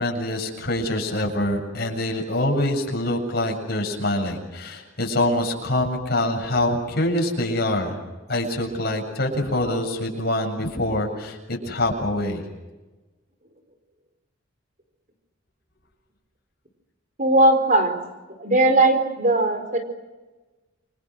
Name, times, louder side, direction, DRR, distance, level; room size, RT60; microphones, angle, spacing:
voice 1, 0.0-8.0 8.3-12.4, left 1 dB, 55° left, 1 dB, 7.6 m, -25 dB
voice 2, 17.2-18.0 18.4-19.8, right 2 dB, 40° right, 7 dB, 4.5 m, -18 dB
30.0 x 24.5 x 6.4 m, 1.2 s
head